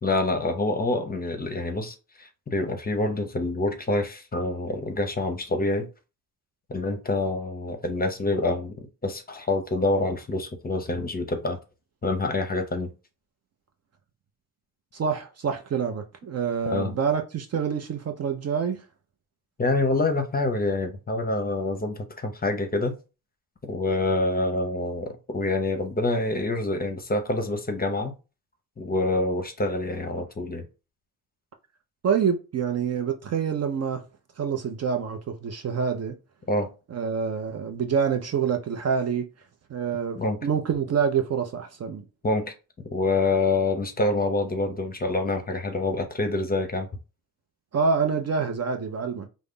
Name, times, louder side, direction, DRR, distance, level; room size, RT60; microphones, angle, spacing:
voice 1, 0.0-5.9 6.7-11.6 12.0-12.9 16.7-16.9 19.6-23.0 23.7-28.1 28.8-30.7 36.5-36.7 40.2-40.4 42.2-42.5 42.9-46.9, left 2 dB, 25° left, 0.7 m, -26 dB
voice 2, 14.9-18.8 32.0-34.0 34.4-36.2 36.9-39.3 39.7-42.0 47.7-49.3, right 6 dB, 40° right, 0.5 m, -26 dB
2.4 x 2.0 x 3.6 m
supercardioid pair, 60°, 39 cm